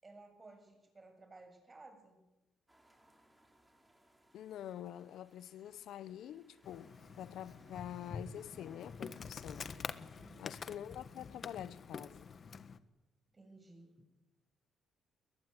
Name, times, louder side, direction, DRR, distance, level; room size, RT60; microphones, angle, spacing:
voice 1, 0.0-2.2 10.2-10.6 13.3-14.1, right 2 dB, 25° right, 7.5 m, -57 dB
sound 1, 2.7-9.9, right 1 dB, 10° right, 4.9 m, -69 dB
voice 2, 4.3-9.7 10.4-12.3, left 11 dB, 80° left, 0.8 m, -47 dB
Insect, 6.6-12.8, left 5 dB, 45° left, 1.4 m, -47 dB
sound 2, 6.6-11.7, right 4 dB, 80° right, 5.4 m, -72 dB
22.0 x 20.5 x 9.9 m
cardioid pair, 90°, 0 cm